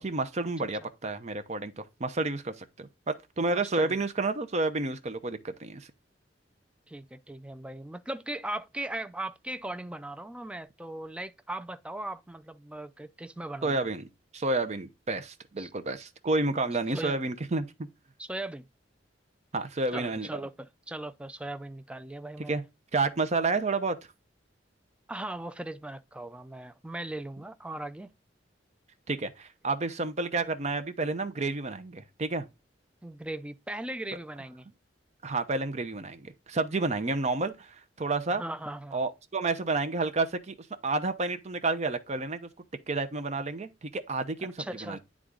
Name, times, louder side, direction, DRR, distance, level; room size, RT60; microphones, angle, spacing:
voice 1, 0.0-5.9 13.6-14.0 14.3-17.9 19.5-20.3 22.5-22.6 22.9-24.0 29.1-32.5 35.2-38.4 38.9-42.5 42.9-44.5 44.8-45.0, right 3 dB, 40° right, 0.7 m, -30 dB
voice 2, 3.5-3.9 6.9-13.8 15.6-15.7 16.9-17.2 18.2-18.7 19.9-22.6 25.1-28.1 33.0-34.7 38.3-39.0 44.4-45.0, right 1 dB, 5° right, 0.3 m, -38 dB
9.5 x 3.7 x 3.7 m
head